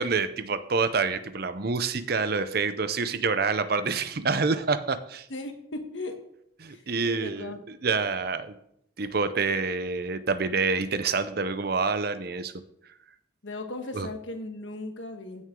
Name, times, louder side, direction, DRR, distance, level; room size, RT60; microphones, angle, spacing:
voice 1, 0.0-5.3 6.6-8.6 9.0-12.5 13.9-14.1, right 4 dB, 55° right, 0.7 m, -27 dB
voice 2, 5.3-6.2 6.7-6.8 7.1-7.6 13.4-15.4, left 2 dB, 80° left, 1.4 m, -37 dB
15.5 x 6.4 x 3.8 m
head